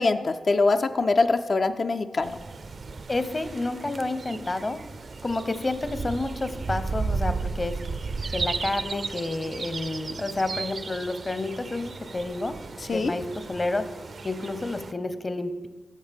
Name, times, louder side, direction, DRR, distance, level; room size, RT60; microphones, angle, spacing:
voice 1, 0.0-2.3 12.9-13.1, left 3 dB, 60° left, 7 dB, 0.4 m, -23 dB
sound 1, 2.2-14.9, right 4 dB, 60° right, 0.4 m, -34 dB
voice 2, 3.1-4.8 5.2-7.7 8.3-12.5 12.9-13.8 14.2-15.7, left 2 dB, 40° left, 11 dB, 0.8 m, -30 dB
12.0 x 6.4 x 3.5 m, 1.3 s
cardioid pair, 45°, 0 cm